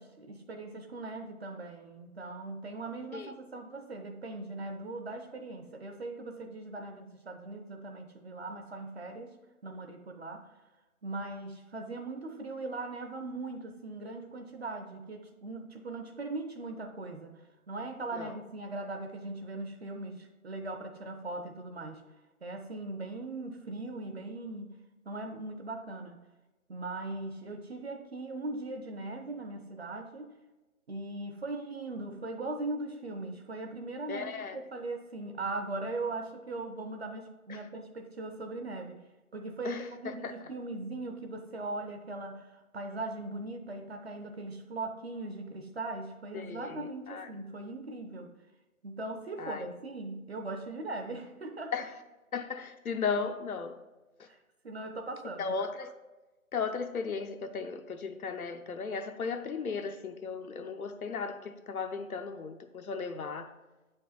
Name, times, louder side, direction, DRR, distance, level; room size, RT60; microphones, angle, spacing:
voice 1, 0.0-9.4 9.6-10.5 11.0-22.0 22.4-24.8 25.0-26.2 26.7-30.4 30.9-39.0 39.3-48.3 48.8-51.8 54.3-54.4 54.6-55.6, right 2 dB, 50° right, 0.6 m, -39 dB
voice 2, 34.1-34.6 37.5-37.6 39.6-40.3 46.3-47.3 49.4-49.6 51.7-51.9 52.3-53.8 54.2-54.3 55.4-55.9 56.5-63.5, left 5 dB, 85° left, 0.8 m, -36 dB
7.6 x 5.3 x 4.0 m
figure-of-eight pair, 160°, 42 cm